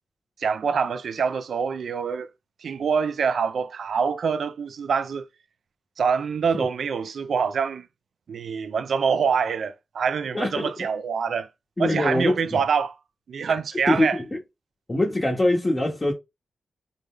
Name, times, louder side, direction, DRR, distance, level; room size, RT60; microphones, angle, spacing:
voice 1, 0.4-2.3 2.6-5.3 6.0-7.9 8.3-11.5 11.8-12.9 13.3-14.2, right 6 dB, 80° right, 0.3 m, -25 dB
voice 2, 10.3-10.7 11.8-12.6 13.9-14.4 14.9-16.1, left 1 dB, 25° left, 0.9 m, -23 dB
3.4 x 2.2 x 3.5 m
cardioid pair, 60°, 0 cm